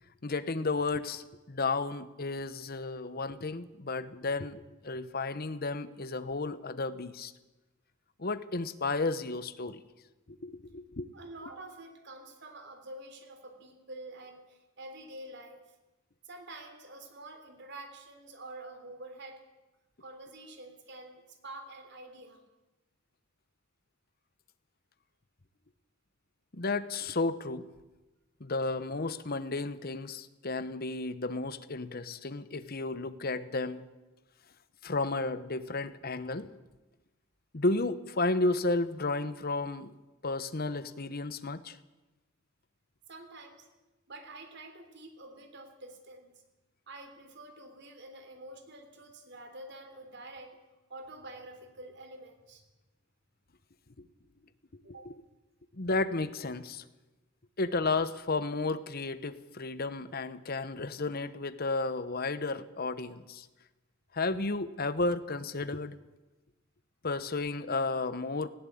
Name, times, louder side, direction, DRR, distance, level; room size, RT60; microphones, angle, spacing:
voice 1, 0.2-7.3 8.2-9.8 10.3-11.1 26.5-27.7 28.4-33.9 34.8-36.5 37.5-39.9 40.2-41.8 54.0-54.1 55.0-55.1 55.7-56.8 57.6-63.5 64.1-66.0 67.0-68.5, left 3 dB, 50° left, 13 dB, 1.1 m, -33 dB
voice 2, 11.1-15.6 16.2-19.4 20.0-22.4 43.1-43.7 44.1-46.4 46.9-50.5 50.9-52.6 54.9-55.0, right 2 dB, 60° right, 7 dB, 3.3 m, -47 dB
19.0 x 16.5 x 8.6 m, 1.1 s
head